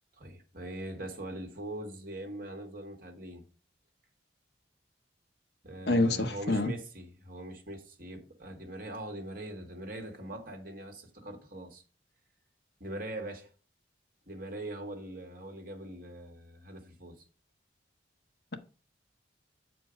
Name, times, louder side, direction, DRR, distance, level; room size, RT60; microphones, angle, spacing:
voice 1, 0.2-3.4 5.6-11.8 12.8-13.5 14.3-17.2, right 1 dB, 50° right, 1.8 m, -42 dB
voice 2, 5.9-6.7, left 2 dB, 60° left, 1.0 m, -26 dB
8.6 x 4.6 x 5.1 m
head